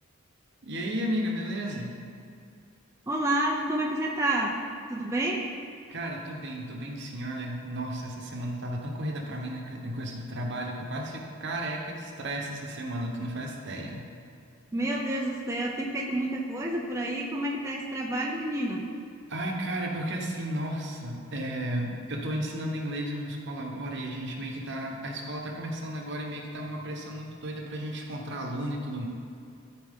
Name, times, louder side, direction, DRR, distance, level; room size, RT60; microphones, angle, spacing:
voice 1, 0.6-2.0 5.9-14.1 19.3-29.1, right 1 dB, 55° right, 1 dB, 1.1 m, -33 dB
voice 2, 3.1-4.6 4.9-5.5 14.7-18.8, right 1 dB, 15° right, -2 dB, 0.6 m, -29 dB
13.0 x 4.8 x 3.7 m, 2.5 s
head